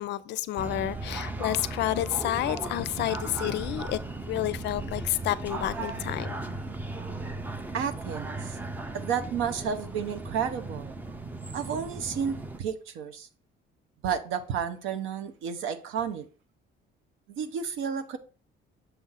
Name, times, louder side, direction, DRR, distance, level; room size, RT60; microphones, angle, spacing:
voice 1, 0.0-4.0 4.3-6.3, left 13 dB, 60° left, 0.4 m, -30 dB
sound 1, 0.6-12.6, right 2 dB, 10° right, 0.4 m, -36 dB
voice 2, 7.7-8.6 8.9-10.9 11.5-13.3 14.0-16.2 17.3-18.2, right 7 dB, 85° right, 0.8 m, -31 dB
6.9 x 2.5 x 5.5 m
cardioid pair, 165°, 20 cm